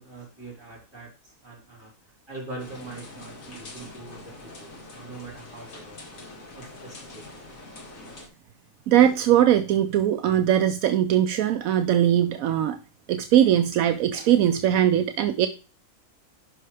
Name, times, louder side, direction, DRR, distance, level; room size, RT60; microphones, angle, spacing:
voice 1, 0.0-6.0 6.5-7.2, right 3 dB, 15° right, -6 dB, 4.4 m, -43 dB
sound 1, 2.6-8.3, left 2 dB, 70° left, 2.1 m, -44 dB
voice 2, 8.9-12.8 13.1-15.5, right 10 dB, 75° right, 9 dB, 1.0 m, -20 dB
11.5 x 5.5 x 3.3 m, 0.35 s
omnidirectional pair, 1.5 m